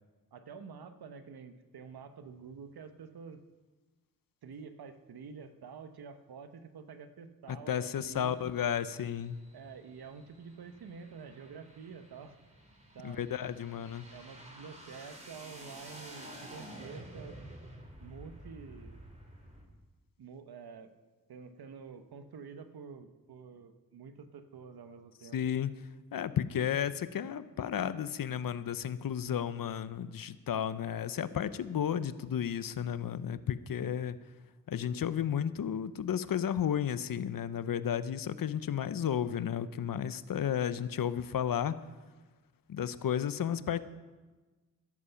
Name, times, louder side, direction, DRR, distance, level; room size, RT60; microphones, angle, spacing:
voice 1, 0.3-3.4 4.4-8.5 9.5-12.3 12.9-13.2 14.1-17.4 18.0-19.0 20.2-20.9 21.3-25.4, right 6 dB, 85° right, 9 dB, 1.1 m, -48 dB
voice 2, 7.5-9.4 13.0-14.1 25.3-25.7 26.1-34.2 34.7-41.8 42.7-43.8, left 9 dB, 65° left, 14 dB, 0.7 m, -33 dB
sound 1, 7.9-19.6, right 1 dB, 20° right, 4.3 m, -51 dB
13.5 x 11.0 x 5.7 m, 1.3 s
cardioid pair, 55°, 37 cm